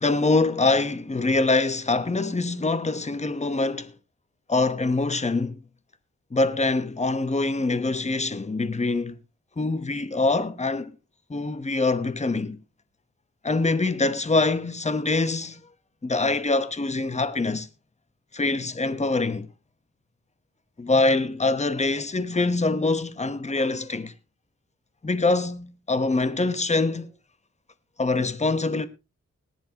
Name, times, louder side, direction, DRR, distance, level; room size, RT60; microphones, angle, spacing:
voice 1, 0.0-3.9 4.5-5.6 6.3-9.2 9.6-10.9 11.3-12.6 13.4-15.6 16.0-17.7 18.3-19.5 20.8-24.1 25.0-27.1 28.0-28.9, left 3 dB, 25° left, 1.0 m, -24 dB
19.5 x 10.5 x 2.9 m
wide cardioid pair, 90°, 29 cm